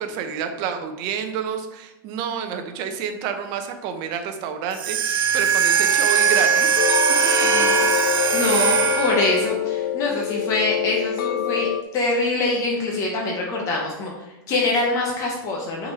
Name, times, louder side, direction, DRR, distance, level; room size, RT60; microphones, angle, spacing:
voice 1, 0.0-6.8 7.4-7.7, right 7 dB, 35° right, 7 dB, 0.7 m, -29 dB
sound 1, 4.7-9.5, right 6 dB, 85° right, 1.2 m, -20 dB
sound 2, 6.8-11.8, left 11 dB, 75° left, 0.4 m, -26 dB
voice 2, 7.4-7.8 8.3-14.1 14.5-15.9, left 2 dB, 25° left, -1 dB, 0.9 m, -24 dB
6.6 x 4.1 x 4.0 m, 0.99 s
supercardioid pair, 160°, 12 cm